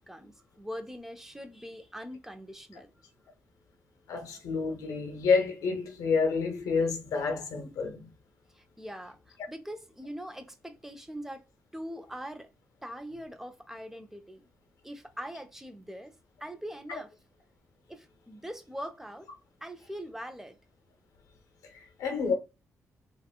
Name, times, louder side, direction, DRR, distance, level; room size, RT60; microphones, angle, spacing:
voice 1, 0.0-2.9 8.5-11.4 11.7-12.5 12.8-14.4 14.8-16.1 16.4-17.1 17.9-19.3 19.6-20.6, equal, 5° right, 0.7 m, -42 dB
voice 2, 4.1-8.1 16.9-17.0 21.7-22.3, left 5 dB, 85° left, 0.9 m, -29 dB
3.3 x 2.4 x 2.3 m
cardioid pair, 70°, 6 cm